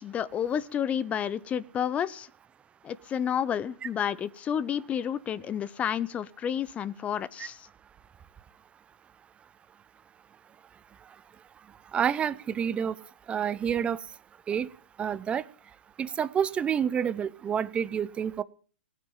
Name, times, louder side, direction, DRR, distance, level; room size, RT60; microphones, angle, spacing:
voice 1, 0.0-2.3 2.8-7.7, left 9 dB, 20° left, 19 dB, 0.7 m, -30 dB
voice 2, 11.9-12.9 13.3-14.0 14.5-14.7 15.0-15.4 16.0-18.4, right 8 dB, 15° right, 18 dB, 0.7 m, -28 dB
16.5 x 9.2 x 7.4 m, 0.40 s
hypercardioid pair, 125°, 7 cm